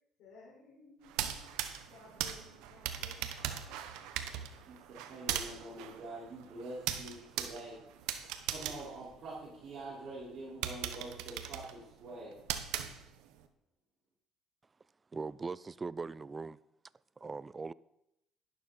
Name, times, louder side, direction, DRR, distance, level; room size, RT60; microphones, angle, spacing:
voice 1, 0.2-1.4 1.9-3.2, left 3 dB, 70° left, -7 dB, 5.1 m, -57 dB
sound 1, 1.0-9.8 10.2-10.3 10.6-13.4, right 10 dB, 80° right, 1.0 m, -39 dB
voice 2, 4.5-7.8 8.1-8.2 8.5-12.4, right 2 dB, 55° right, -7 dB, 4.8 m, -46 dB
voice 3, 15.1-16.6 17.2-17.7, right 4 dB, 25° right, 20 dB, 0.4 m, -40 dB
11.5 x 11.5 x 4.3 m, 0.84 s
supercardioid pair, 80°, 0 cm